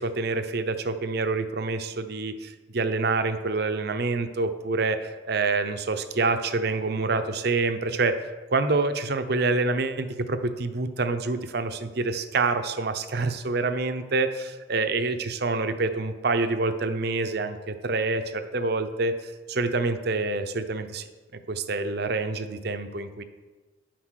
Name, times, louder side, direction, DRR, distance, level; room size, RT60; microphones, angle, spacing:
voice 1, 0.0-21.1 21.5-23.2, right 3 dB, 55° right, 9 dB, 0.7 m, -27 dB
9.8 x 6.0 x 6.4 m, 1.3 s
head